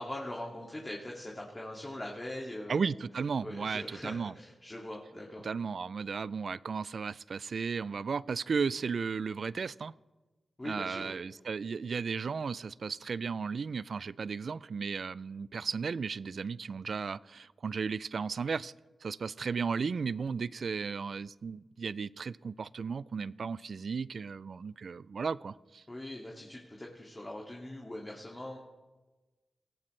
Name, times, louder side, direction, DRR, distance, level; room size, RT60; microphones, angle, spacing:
voice 1, 0.0-3.0 3.4-5.5 10.6-11.2 25.9-28.6, left 1 dB, 25° left, 2.2 m, -42 dB
voice 2, 2.7-4.3 5.4-9.9 10.6-18.7 19.0-25.8, right 5 dB, 70° right, 0.3 m, -35 dB
18.5 x 14.5 x 3.2 m
cardioid pair, 55°, 0 cm